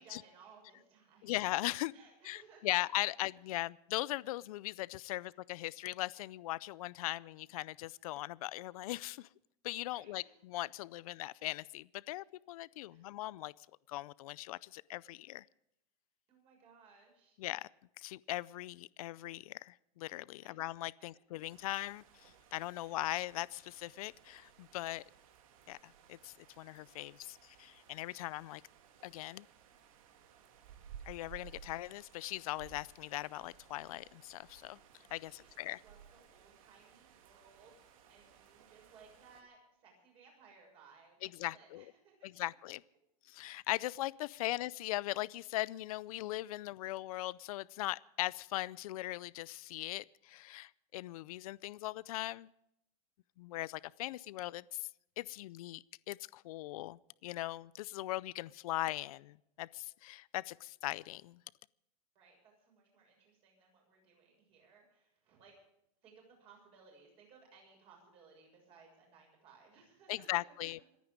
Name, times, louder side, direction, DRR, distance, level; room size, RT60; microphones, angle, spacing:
voice 1, 0.0-1.4 1.9-2.8 5.1-5.3 9.9-10.3 12.9-13.1 16.3-17.4 20.4-20.6 22.8-23.0 35.3-42.4 44.4-44.5 62.1-65.5 66.0-70.4, right 5 dB, 30° right, 0 dB, 6.7 m, -62 dB
voice 2, 1.2-1.9 2.2-9.3 9.6-13.5 13.9-15.4 17.4-17.7 18.0-25.0 25.7-28.6 29.0-29.5 31.1-34.8 35.1-35.8 41.2-41.8 42.2-42.8 43.3-52.5 53.4-54.9 55.2-61.4 70.1-70.8, left 17 dB, 70° left, 21 dB, 0.5 m, -39 dB
sound 1, 21.5-39.4, right 8 dB, 60° right, 2.5 m, -59 dB
27.0 x 9.4 x 5.2 m, 0.81 s
supercardioid pair, 175°, 20 cm